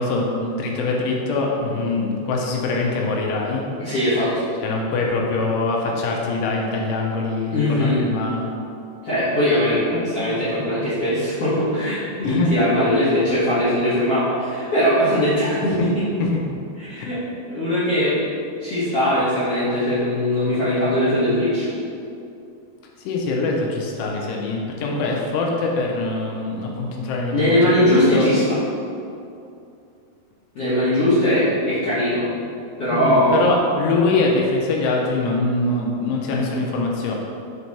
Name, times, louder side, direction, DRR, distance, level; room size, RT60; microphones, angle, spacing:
voice 1, 0.0-3.6 4.6-8.5 12.3-12.5 16.2-16.4 17.0-17.1 23.0-27.6 27.8-28.3 32.9-37.2, left 3 dB, 85° left, -1 dB, 2.8 m, -23 dB
voice 2, 3.8-4.4 7.5-8.0 9.0-15.8 16.8-17.2 17.5-18.2 18.6-21.7 27.3-28.4 30.5-32.2 32.8-33.4, left 1 dB, 60° left, -13 dB, 1.6 m, -20 dB
6.1 x 4.6 x 4.1 m, 2.6 s
omnidirectional pair, 4.8 m